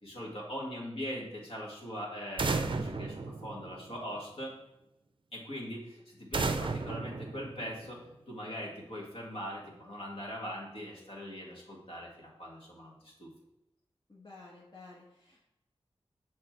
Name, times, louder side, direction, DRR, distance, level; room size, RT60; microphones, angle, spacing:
voice 1, 0.0-4.5 5.3-13.3, equal, 65° left, -3 dB, 1.9 m, -41 dB
sound 1, 2.4-4.2 6.3-8.1, right 3 dB, 50° right, 0.5 m, -34 dB
voice 2, 14.1-15.4, left 3 dB, 45° left, -4 dB, 1.2 m, -52 dB
6.6 x 3.3 x 4.6 m, 0.88 s
cardioid pair, 50°, 10 cm